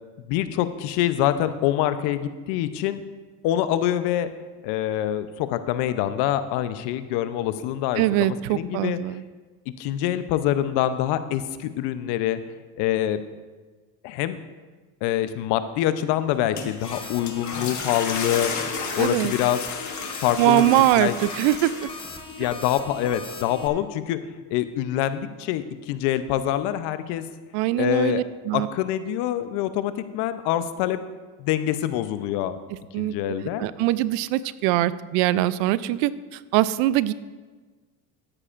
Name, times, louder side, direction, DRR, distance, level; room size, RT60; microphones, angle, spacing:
voice 1, 0.3-3.0 3.4-4.3 4.6-9.2 9.8-12.4 12.8-13.2 14.0-14.4 15.0-18.5 18.9-19.6 20.2-20.7 21.0-21.1 22.4-27.2 27.8-28.2 28.5-31.0 31.4-32.6 33.0-33.7, left 12 dB, 70° left, 12 dB, 0.8 m, -25 dB
voice 2, 8.0-9.2 19.0-19.3 20.4-21.9 22.4-22.5 27.5-28.7 32.9-33.1 33.6-37.1, right 15 dB, 75° right, 17 dB, 0.6 m, -22 dB
sound 1, 16.3-22.4, left 5 dB, 40° left, 1.5 m, -33 dB
sound 2, 16.8-23.7, left 3 dB, 10° left, 1.1 m, -39 dB
13.0 x 9.7 x 2.5 m, 1.3 s
supercardioid pair, 90°, 43 cm